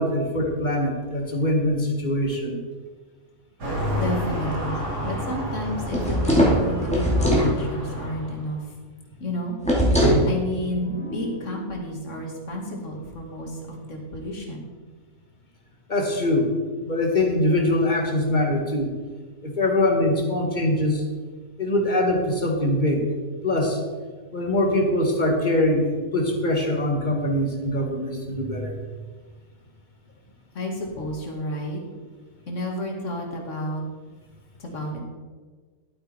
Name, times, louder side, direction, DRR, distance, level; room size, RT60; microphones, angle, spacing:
voice 1, 0.0-2.6 15.9-16.5 16.8-18.9 19.4-21.0 21.6-23.0 23.4-23.8 24.3-28.8, left 1 dB, 30° left, 2 dB, 1.7 m, -23 dB
sound 1, 3.6-8.5, equal, 85° right, 3.5 m, -30 dB
voice 2, 3.9-6.4 6.7-8.6 9.2-9.6 10.3-14.7 30.5-31.8 32.5-33.8 34.6-35.0, left 1 dB, 50° left, 1 dB, 2.3 m, -31 dB
sound 2, 5.9-7.5 9.6-10.3, equal, 5° left, 2.4 m, -19 dB
sound 3, 10.1-13.8, right 1 dB, 45° right, 2.6 m, -39 dB
12.0 x 8.6 x 4.5 m, 1.4 s
omnidirectional pair, 1.7 m